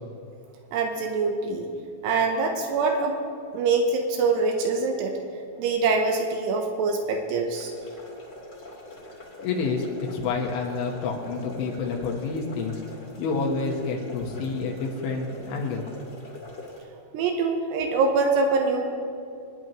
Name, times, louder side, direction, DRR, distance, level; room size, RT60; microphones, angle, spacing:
voice 1, 0.7-1.7 2.0-3.2 3.5-5.2 5.6-7.7 17.1-18.8, right 4 dB, 80° right, 3 dB, 2.6 m, -24 dB
sound 1, 7.5-16.8, left 1 dB, 45° left, 1.5 m, -44 dB
voice 2, 9.4-12.8 13.2-15.9, left 4 dB, 75° left, 0 dB, 3.5 m, -28 dB
24.0 x 10.5 x 3.1 m, 2.4 s
omnidirectional pair, 5.8 m